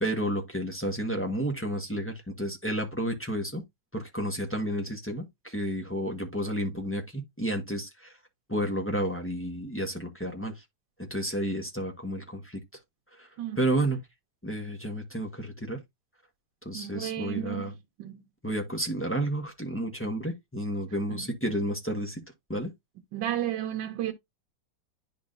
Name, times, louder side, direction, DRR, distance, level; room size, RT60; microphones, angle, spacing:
voice 1, 0.0-3.6 3.9-8.1 8.5-10.6 11.0-12.6 13.2-13.3 13.6-14.0 14.4-15.8 16.6-17.7 18.4-22.2 22.5-22.7, right 1 dB, 10° left, 1.0 m, -31 dB
voice 2, 16.7-17.7 18.0-18.2 21.1-21.3 23.1-24.1, right 12 dB, 85° right, 1.6 m, -32 dB
10.5 x 4.1 x 2.5 m
omnidirectional pair, 2.0 m